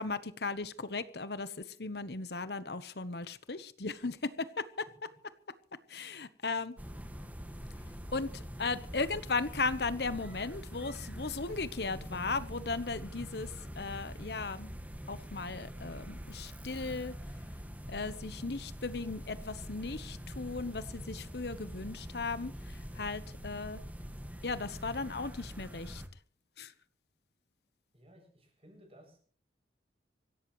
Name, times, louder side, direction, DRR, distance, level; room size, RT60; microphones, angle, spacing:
voice 1, 0.0-5.1 5.9-6.8 8.1-14.7 15.1-17.2 17.9-23.8 24.4-26.0 26.6-26.7, left 3 dB, 65° left, 14 dB, 1.1 m, -37 dB
sound 1, 6.8-26.1, equal, 10° right, 1.9 m, -44 dB
voice 2, 27.9-29.2, equal, 35° right, 4 dB, 7.2 m, -58 dB
25.5 x 16.5 x 3.2 m, 0.43 s
head